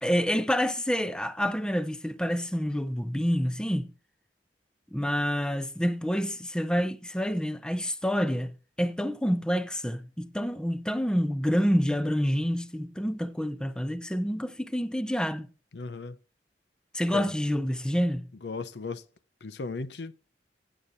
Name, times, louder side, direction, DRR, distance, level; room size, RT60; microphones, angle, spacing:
voice 1, 0.0-3.9 4.9-15.5 16.9-18.3, equal, 5° left, 0.6 m, -28 dB
voice 2, 15.7-16.2 17.1-17.3 18.4-19.0 19.4-20.1, left 4 dB, 75° left, 0.7 m, -36 dB
16.0 x 8.8 x 2.6 m
head